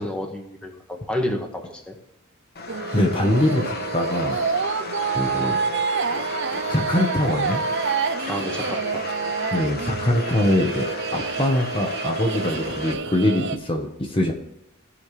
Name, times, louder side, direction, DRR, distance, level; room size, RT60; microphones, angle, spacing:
voice 1, 0.0-2.0 5.3-5.6 8.3-9.0, left 1 dB, 5° left, 1 dB, 1.6 m, -30 dB
sound 1, 2.6-12.9, left 4 dB, 50° left, 1.4 m, -35 dB
sound 2, 2.7-13.6, right 5 dB, 55° right, 0.6 m, -27 dB
voice 2, 2.9-4.4 5.1-5.6 6.7-7.6 9.5-14.3, left 1 dB, 25° left, 1 dB, 1.2 m, -23 dB
17.0 x 5.7 x 3.4 m, 0.85 s
head